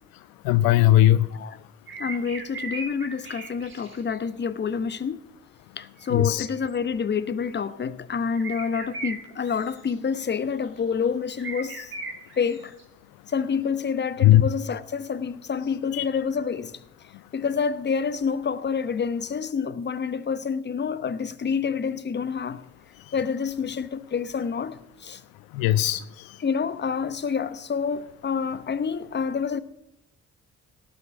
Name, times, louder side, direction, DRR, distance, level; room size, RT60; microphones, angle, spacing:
voice 1, 0.4-1.3 6.1-6.5 14.2-14.4 15.9-16.0 25.5-26.4, left 14 dB, 65° left, 0.5 m, -19 dB
sound 1, 1.9-4.2 4.4-4.5 6.4-6.8 7.5-7.6 8.4-9.9 10.6-10.9 11.4-12.8 13.4-13.5, right 3 dB, 30° right, 3.5 m, -38 dB
voice 2, 2.0-5.2 5.8-11.9 12.4-12.7 13.3-16.7 17.3-22.6 23.1-25.2 26.4-29.6, left 6 dB, 30° left, 0.8 m, -28 dB
17.5 x 6.4 x 6.0 m
hypercardioid pair, 40°, 38 cm